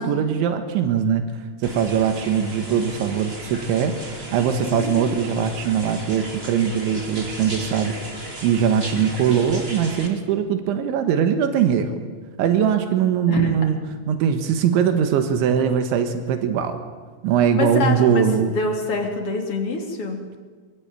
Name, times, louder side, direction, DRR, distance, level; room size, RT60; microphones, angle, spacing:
voice 1, 0.0-8.0 8.4-11.9 12.4-13.8 14.1-16.8 17.2-18.5, right 8 dB, 90° right, 8 dB, 3.9 m, -21 dB
sound 1, 1.6-10.1, right 2 dB, 20° right, 2.1 m, -35 dB
voice 2, 4.7-5.3 10.8-10.9 13.3-13.5 17.5-18.3 18.5-20.2, left 3 dB, 35° left, 2 dB, 3.6 m, -26 dB
24.0 x 22.5 x 9.2 m, 1.5 s
omnidirectional pair, 5.2 m